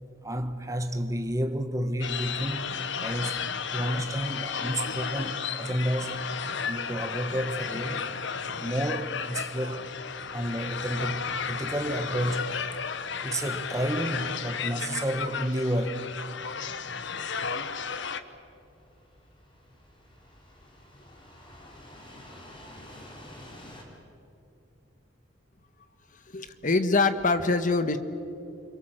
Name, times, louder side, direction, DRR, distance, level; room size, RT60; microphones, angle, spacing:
voice 1, 0.2-3.4 3.7-6.3 6.6-8.0 8.6-9.9 10.3-12.5 13.2-16.1, right 1 dB, 15° right, 1.3 m, -31 dB
sound 1, 2.0-18.2, left 6 dB, 65° left, 1.1 m, -33 dB
sound 2, 13.1-23.8, left 1 dB, 25° left, 4.1 m, -52 dB
voice 2, 26.1-28.0, left 3 dB, 45° left, 1.4 m, -24 dB
29.5 x 22.5 x 7.7 m
head